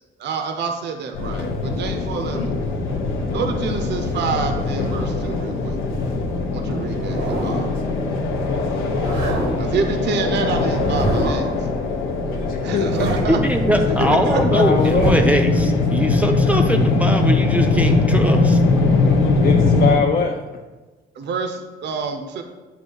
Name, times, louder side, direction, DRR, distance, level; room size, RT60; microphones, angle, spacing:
voice 1, 0.2-2.6 3.3-5.8 6.5-7.7 9.6-11.7 12.6-13.4 14.0-14.6 21.2-22.4, right 5 dB, 60° right, 5 dB, 0.6 m, -27 dB
sound 1, 1.1-20.0, left 3 dB, 90° left, 0.7 m, -21 dB
sound 2, 6.9-7.8 8.9-9.8 10.7-11.6 12.6-13.5 14.6-15.4 16.5-16.6, right 2 dB, 85° right, 1.0 m, -26 dB
voice 2, 12.3-13.1 13.7-14.3 14.5-15.2 19.4-20.4, left 6 dB, 45° left, 3 dB, 0.5 m, -22 dB
voice 3, 13.3-18.6, right 1 dB, 5° right, 2 dB, 0.5 m, -21 dB
7.8 x 2.7 x 4.5 m, 1.2 s
cardioid pair, 90°, 20 cm